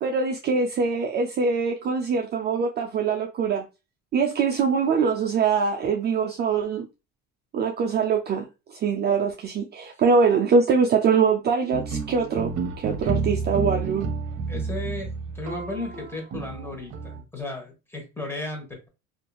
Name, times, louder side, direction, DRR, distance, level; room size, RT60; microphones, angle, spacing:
voice 1, 0.0-3.6 4.1-6.9 7.5-12.5 12.8-14.1, right 5 dB, 35° right, 0.4 m, -23 dB
sound 1, 11.7-17.2, right 5 dB, 55° right, 0.8 m, -30 dB
voice 2, 14.5-15.1 15.3-18.9, left 2 dB, 10° left, 1.1 m, -35 dB
2.8 x 2.5 x 2.2 m
supercardioid pair, 110°, 30 cm